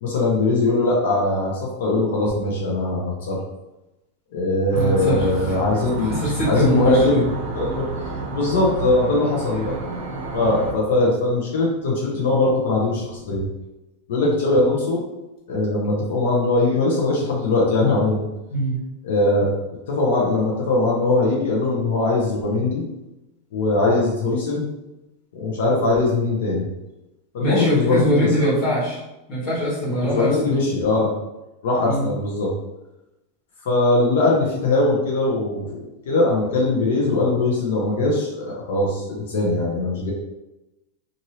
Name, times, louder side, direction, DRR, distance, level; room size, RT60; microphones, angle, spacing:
voice 1, 0.0-3.4 4.3-6.2 6.5-9.7 10.3-13.4 14.1-15.0 15.5-18.3 19.0-19.5 19.9-22.8 23.5-24.6 25.3-26.7 27.3-28.5 30.0-31.1 31.6-32.5 33.7-35.8 36.1-40.1, left 2 dB, 70° left, -3 dB, 0.7 m, -21 dB
voice 2, 4.7-5.6 5.9-7.2 18.5-18.7 27.4-29.0 29.3-30.6 31.8-32.1, right 1 dB, 30° left, -7 dB, 1.3 m, -23 dB
sound 1, 4.7-10.7, right 3 dB, 45° right, 0.6 m, -30 dB
2.7 x 2.6 x 3.0 m, 0.97 s
supercardioid pair, 165°, 0 cm